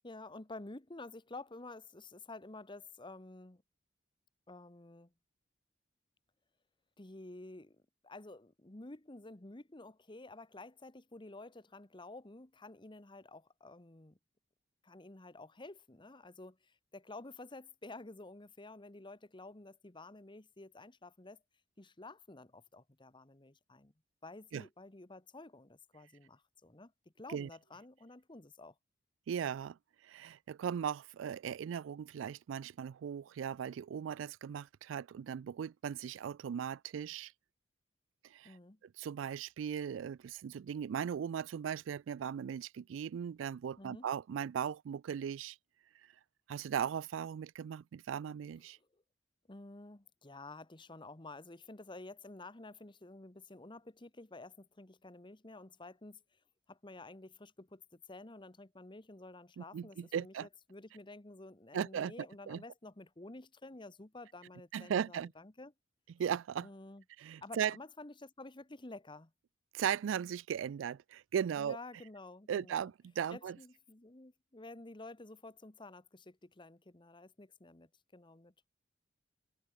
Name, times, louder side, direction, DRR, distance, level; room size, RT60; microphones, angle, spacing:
voice 1, 0.0-3.6 4.5-5.1 7.0-7.8 8.0-14.2 14.8-21.4 21.8-23.9 24.2-28.7 38.4-38.8 43.8-44.1 48.9-49.0 49.5-56.2 56.7-65.7 66.6-67.0 67.4-69.3 71.6-72.9 73.3-78.7, left 2 dB, 25° left, 1.2 m, -51 dB
voice 2, 29.3-29.8 30.0-37.3 38.3-38.6 39.0-45.6 46.5-48.8 59.6-60.5 61.7-62.1 62.5-62.6 64.7-65.3 66.2-66.7 67.2-67.8 69.7-71.8 72.5-73.6, right 8 dB, 85° right, 0.3 m, -37 dB
head